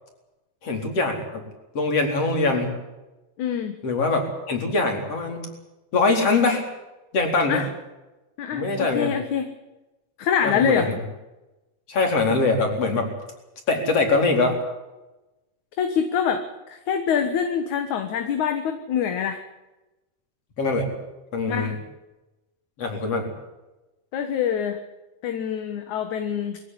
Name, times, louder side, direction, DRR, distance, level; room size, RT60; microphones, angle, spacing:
voice 1, 0.6-1.4 1.8-2.7 3.8-4.2 4.5-5.5 5.9-6.6 7.1-7.6 8.5-9.1 10.4-10.8 11.9-13.1 13.7-14.6 20.6-20.9 21.3-21.8 22.8-23.3, left 3 dB, 45° left, 3 dB, 5.2 m, -22 dB
voice 2, 3.4-3.8 7.5-7.7 8.4-9.5 10.2-11.0 15.8-19.4 21.5-21.8 24.1-24.8 25.2-26.6, left 7 dB, 65° left, 7 dB, 2.8 m, -25 dB
22.5 x 16.0 x 9.9 m, 1.0 s
omnidirectional pair, 3.7 m